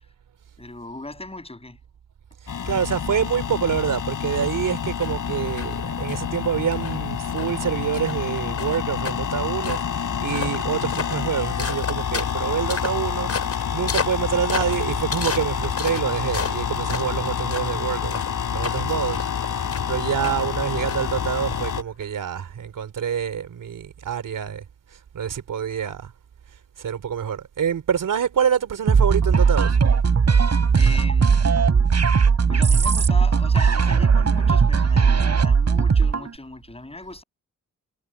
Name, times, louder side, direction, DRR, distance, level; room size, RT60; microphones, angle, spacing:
voice 1, 0.6-1.8 20.2-20.5 30.7-31.4 32.5-37.2, left 2 dB, 20° left, 7.5 m, -38 dB
voice 2, 2.4-18.2 18.5-19.3 19.5-26.1 26.8-29.8, right 8 dB, 90° right, 3.4 m, -26 dB
sound 1, 2.5-21.8, left 7 dB, 80° left, 5.4 m, -28 dB
sound 2, 4.3-22.0, left 5 dB, 50° left, 7.4 m, -35 dB
sound 3, 28.9-36.3, right 5 dB, 55° right, 4.6 m, -18 dB
wide cardioid pair, 90°, 31 cm